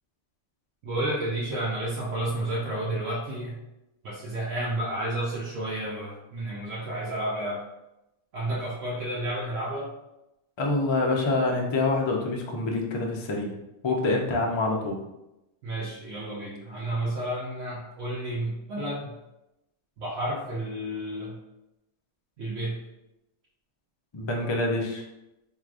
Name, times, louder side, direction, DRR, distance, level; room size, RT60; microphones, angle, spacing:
voice 1, 0.8-3.6 4.0-7.6 8.3-9.9 15.6-19.1 20.0-21.4 22.4-22.8, right 1 dB, 80° right, -6 dB, 1.1 m, -31 dB
voice 2, 10.6-13.5 13.8-15.0 24.1-25.0, left 2 dB, 50° left, 0 dB, 0.3 m, -26 dB
4.6 x 2.8 x 2.4 m, 0.93 s
omnidirectional pair, 1.3 m